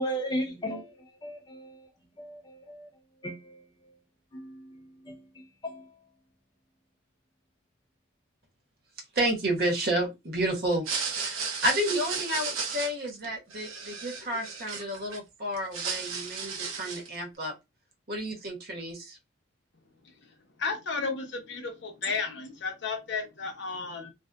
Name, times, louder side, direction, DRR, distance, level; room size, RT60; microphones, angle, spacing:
voice 1, 0.0-1.9 2.2-2.9 3.2-3.9 4.3-6.0, equal, 20° left, 0.4 m, -36 dB
voice 2, 9.1-17.5 18.1-19.2, right 1 dB, 50° right, 0.8 m, -31 dB
sound 1, 10.7-15.2 15.5-17.2, right 5 dB, 85° right, 0.8 m, -34 dB
voice 3, 20.6-24.1, left 4 dB, 55° left, 0.7 m, -33 dB
2.6 x 2.3 x 2.2 m
head